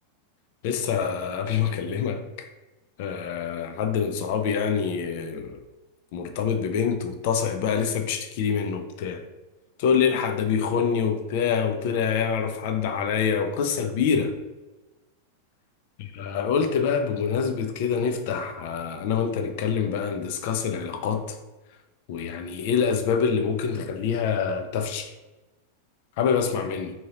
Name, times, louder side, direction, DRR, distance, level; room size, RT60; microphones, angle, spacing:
voice 1, 0.6-2.2 3.0-5.6 6.1-9.2 9.8-14.3 16.0-21.4 22.1-25.1 26.2-26.9, left 6 dB, 50° left, 0.4 m, -26 dB
3.7 x 2.7 x 2.8 m
figure-of-eight pair, 90°, 0 cm